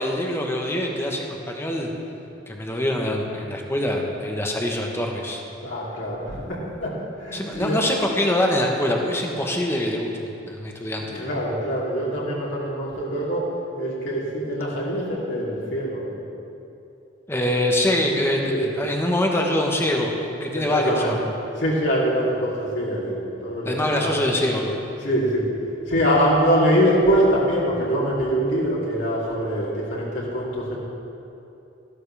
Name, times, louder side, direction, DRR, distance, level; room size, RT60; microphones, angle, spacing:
voice 1, 0.0-1.9 2.5-5.4 7.3-11.3 17.3-21.2 23.6-24.8, left 1 dB, 15° left, 0 dB, 1.2 m, -24 dB
voice 2, 5.6-7.8 11.1-13.5 13.8-16.1 18.4-18.7 20.5-21.1 21.6-24.1 25.0-25.5 25.9-30.8, equal, 65° left, -6 dB, 3.1 m, -23 dB
15.0 x 12.0 x 3.4 m, 2.8 s
head